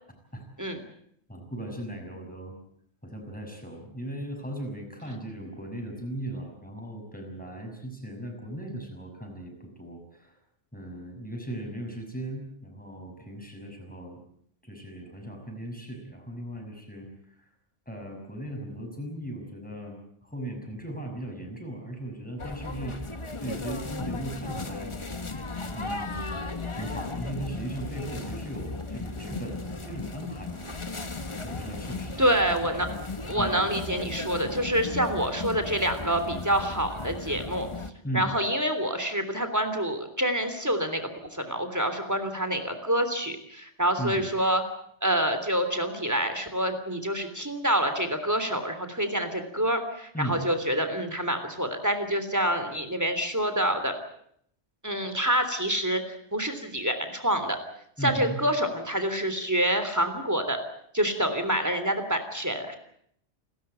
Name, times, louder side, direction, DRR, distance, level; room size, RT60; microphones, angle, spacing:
voice 1, 1.3-2.5 3.0-10.4 10.7-14.2 14.6-17.5 17.9-23.0 23.4-24.9 25.7-26.3 26.7-30.7 31.4-32.3 33.3-33.6 38.0-38.4 44.0-44.3 50.1-50.4 58.0-58.4, right 1 dB, 5° left, 2 dB, 6.1 m, -37 dB
sound 1, 22.4-37.9, left 3 dB, 25° left, 1.3 m, -36 dB
voice 2, 32.2-32.9 33.3-37.7 38.1-44.6 45.0-53.9 54.8-57.6 58.0-60.6 60.9-62.8, right 1 dB, 15° right, 8 dB, 3.3 m, -27 dB
29.0 x 13.0 x 9.1 m, 0.69 s
omnidirectional pair, 1.2 m